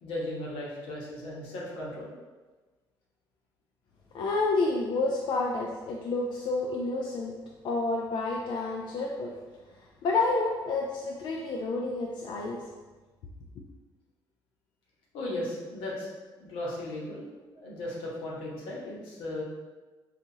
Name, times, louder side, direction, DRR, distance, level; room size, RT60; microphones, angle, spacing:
voice 1, 0.0-2.1 15.1-16.1 16.4-17.3 17.6-19.4, left 1 dB, 85° left, -5 dB, 1.0 m, -36 dB
voice 2, 4.1-7.4 7.6-9.3 10.0-12.6, left 3 dB, 65° left, -2 dB, 0.4 m, -29 dB
4.0 x 2.4 x 2.7 m, 1.3 s
cardioid pair, 100°, 9 cm